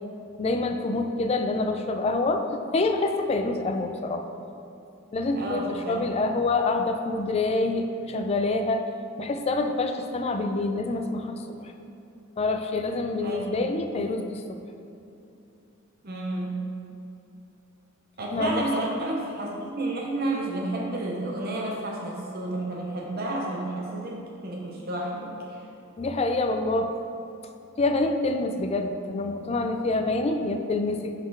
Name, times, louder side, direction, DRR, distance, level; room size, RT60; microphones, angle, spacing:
voice 1, 0.4-4.3 5.1-8.9 9.2-11.7 12.4-14.6 18.3-18.8 26.0-26.9 27.8-31.1, left 2 dB, 30° left, 6 dB, 0.3 m, -26 dB
voice 2, 5.3-6.1 13.2-13.6 16.0-16.6 18.2-25.6, right 1 dB, 50° right, -1 dB, 0.7 m, -31 dB
6.2 x 4.0 x 4.7 m, 2.8 s
head